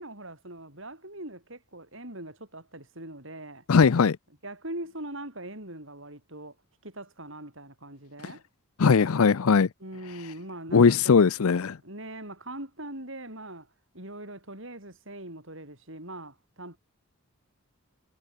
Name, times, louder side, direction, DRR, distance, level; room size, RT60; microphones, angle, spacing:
voice 1, 0.0-3.6 4.4-6.5 6.8-8.4 9.8-11.5 11.8-13.7 13.9-16.8, right 1 dB, 60° right, 7.8 m, -41 dB
voice 2, 3.7-4.2 8.8-9.7 10.7-11.8, left 5 dB, 80° left, 0.5 m, -19 dB
head